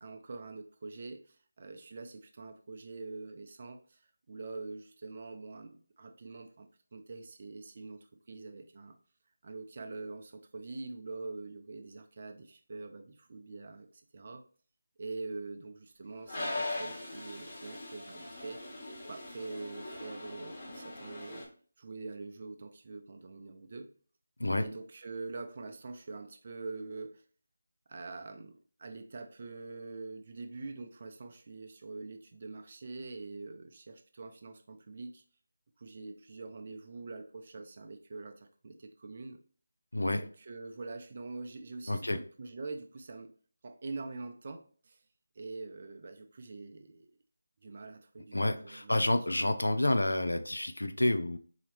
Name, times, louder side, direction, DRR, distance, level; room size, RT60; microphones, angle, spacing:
voice 1, 0.0-9.0 9.4-14.4 15.0-18.6 19.1-21.5 21.8-23.9 24.6-27.2 27.9-35.2 35.8-39.4 40.2-43.3 43.6-45.0 45.3-47.1 47.6-49.0, right 3 dB, 40° right, 5 dB, 0.5 m, -44 dB
Toilet flush, 16.2-21.4, left 2 dB, 35° left, 1.4 m, -40 dB
voice 2, 41.9-42.2 48.3-51.4, left 1 dB, 80° left, 8 dB, 0.5 m, -29 dB
3.9 x 2.8 x 3.1 m, 0.43 s
figure-of-eight pair, 160°, 0 cm